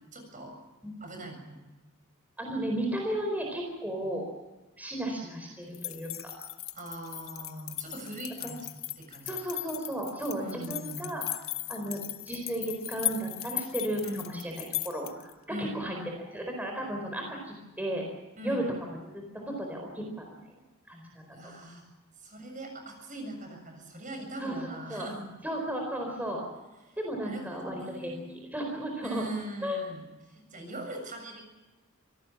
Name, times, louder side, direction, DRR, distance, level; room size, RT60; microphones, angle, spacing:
voice 1, 0.1-0.5 1.0-1.6 6.8-9.3 10.4-11.2 14.0-14.3 15.5-16.1 18.4-18.7 21.3-21.9 22.2-25.3 27.2-28.4 29.0-31.4, right 1 dB, 40° right, 4 dB, 7.1 m, -41 dB
voice 2, 2.4-4.2 4.8-6.3 8.4-8.5 9.2-11.4 11.7-16.0 16.3-18.1 18.4-18.9 19.3-20.5 20.9-21.5 24.4-25.1 25.4-26.4 27.0-28.2 28.5-29.2 29.6-29.8, right 1 dB, 10° right, 1 dB, 4.4 m, -34 dB
sound 1, 5.7-15.3, left 15 dB, 70° left, 1.2 m, -37 dB
26.0 x 18.0 x 7.3 m, 1.1 s
head